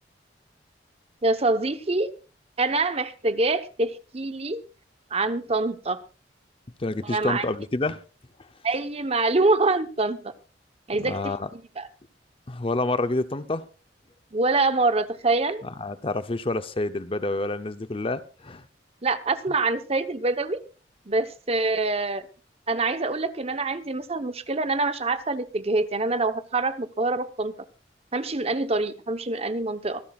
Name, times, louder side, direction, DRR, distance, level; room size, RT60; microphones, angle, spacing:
voice 1, 1.2-2.1 2.6-4.6 5.1-6.0 7.0-7.4 8.6-10.3 10.9-11.9 14.3-15.6 19.0-20.6 21.1-22.3 22.7-27.5 28.1-30.0, right 3 dB, 35° right, 1.0 m, -25 dB
voice 2, 6.8-8.0 11.0-11.5 12.5-13.6 15.8-18.6, left 2 dB, 30° left, 0.7 m, -28 dB
25.0 x 11.5 x 2.4 m
head